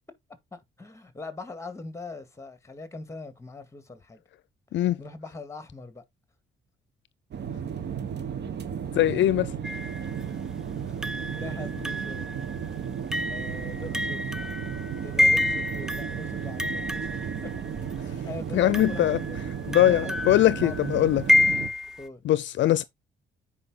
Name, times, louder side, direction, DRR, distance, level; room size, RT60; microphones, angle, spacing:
voice 1, 0.5-4.2 5.0-6.0 10.8-11.0 11.3-12.4 13.0-14.3 15.0-16.9 17.2-17.5 18.0-19.6 19.9-21.1 22.0-22.2, left 3 dB, 15° left, 2.1 m, -42 dB
sound 1, 7.3-21.7, right 7 dB, 60° right, 1.6 m, -34 dB
voice 2, 8.9-9.5 18.5-19.2 19.7-21.2 22.2-22.8, left 13 dB, 70° left, 0.5 m, -21 dB
sound 2, 9.6-10.2 11.0-17.9 18.7-22.1, left 1 dB, 5° right, 0.7 m, -29 dB
9.7 x 5.0 x 3.9 m
cardioid pair, 90°, 20 cm